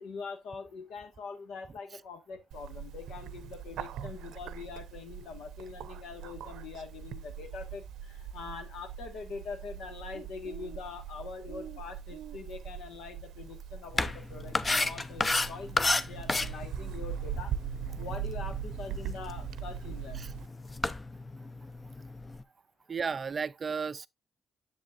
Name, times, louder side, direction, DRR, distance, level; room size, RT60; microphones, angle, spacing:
voice 1, 0.0-17.5 18.0-20.2, left 5 dB, 80° left, 1.6 m, -43 dB
Bird, 2.5-20.5, right 9 dB, 85° right, 0.6 m, -41 dB
sound 1, 13.9-22.4, left 2 dB, 25° left, 0.6 m, -34 dB
voice 2, 22.9-24.1, right 5 dB, 40° right, 0.4 m, -33 dB
7.5 x 7.5 x 2.5 m
cardioid pair, 90°, 0 cm